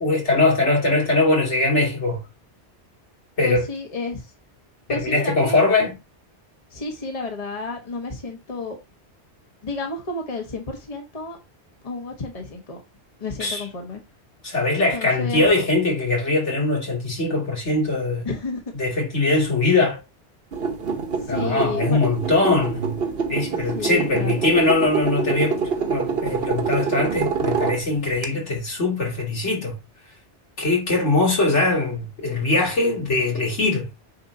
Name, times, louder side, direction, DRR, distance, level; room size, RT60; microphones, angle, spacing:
voice 1, 0.0-2.2 3.4-3.7 4.9-6.0 13.4-13.6 14.4-18.3 18.7-20.0 21.3-23.0 23.3-29.8 30.6-33.9, left 2 dB, 85° left, 3.2 m, -21 dB
voice 2, 3.4-4.3 4.9-5.6 6.7-8.8 9.6-11.4 11.8-12.8 13.2-14.0 14.9-15.4 18.2-18.6 21.2-22.0 23.7-24.5, left 3 dB, 35° left, 1.4 m, -31 dB
sound 1, 20.5-28.2, right 5 dB, 60° right, 1.4 m, -26 dB
9.4 x 4.4 x 2.8 m
omnidirectional pair, 1.2 m